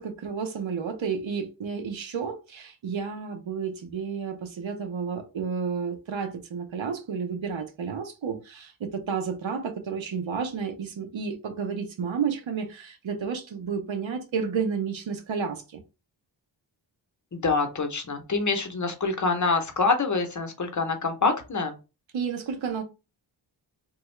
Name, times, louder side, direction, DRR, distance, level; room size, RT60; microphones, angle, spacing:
voice 1, 0.0-15.8 22.1-22.8, right 6 dB, 75° right, 0.9 m, -31 dB
voice 2, 17.3-21.8, left 4 dB, 40° left, 0.7 m, -26 dB
3.3 x 2.3 x 3.1 m
wide cardioid pair, 90°, 47 cm